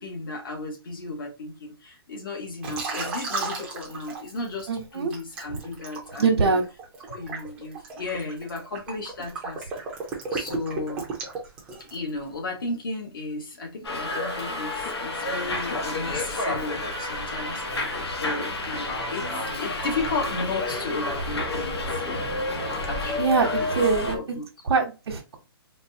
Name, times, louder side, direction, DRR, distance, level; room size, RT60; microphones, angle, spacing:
voice 1, 0.0-6.6 7.1-9.7 10.3-11.0 11.9-17.9 18.2-22.0 22.8-23.7 24.1-24.4, left 3 dB, 60° left, 1.5 m, -34 dB
Liquid, 2.6-4.6 5.1-12.1, right 4 dB, 5° right, 0.5 m, -34 dB
voice 2, 4.7-5.1 5.5-5.6 6.2-6.6 23.2-24.2 24.6-25.4, right 4 dB, 90° right, 0.9 m, -23 dB
Subway metro underground, 13.8-24.2, left 2 dB, 90° left, 1.1 m, -29 dB
3.9 x 2.3 x 2.7 m
hypercardioid pair, 175°, 13 cm